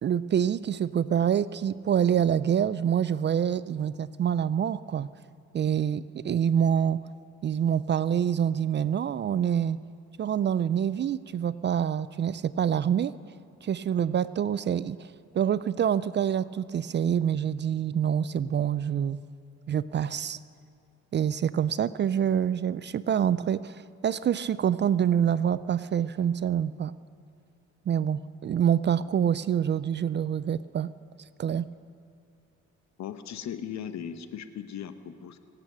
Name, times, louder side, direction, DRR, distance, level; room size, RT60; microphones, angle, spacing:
voice 1, 0.0-5.1 5.5-7.0 7.4-9.8 10.2-13.1 13.6-15.1 15.3-19.2 19.7-20.4 21.1-26.9 27.9-30.9 31.4-31.7, right 9 dB, 40° right, 17 dB, 0.4 m, -26 dB
voice 2, 33.0-35.4, left 8 dB, 65° left, 10 dB, 1.0 m, -38 dB
25.5 x 8.7 x 6.1 m, 2.3 s
cardioid pair, 90°, 30 cm